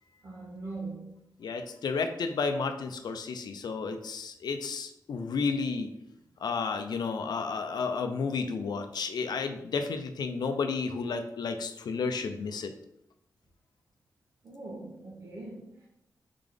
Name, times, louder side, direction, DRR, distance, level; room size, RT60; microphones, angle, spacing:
voice 1, 0.2-1.2 14.4-15.9, right 3 dB, 55° right, 1.0 m, -41 dB
voice 2, 1.4-5.9 6.4-12.7, left 4 dB, 85° left, 0.5 m, -32 dB
3.7 x 3.4 x 3.8 m
wide cardioid pair, 160°, 7 cm